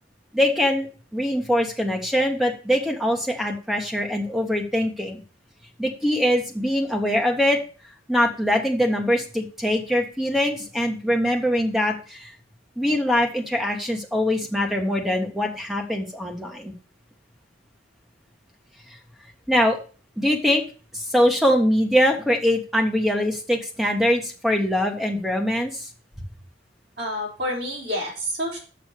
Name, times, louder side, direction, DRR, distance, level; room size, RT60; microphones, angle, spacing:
voice 1, 0.3-5.2 5.8-7.6 8.1-12.3 12.8-16.7 19.5-19.8 20.2-20.6 20.9-25.9, equal, ahead, 2 dB, 1.4 m, -23 dB
voice 2, 27.0-28.6, equal, 60° right, -2 dB, 3.8 m, -28 dB
6.7 x 6.2 x 6.7 m, 0.36 s
head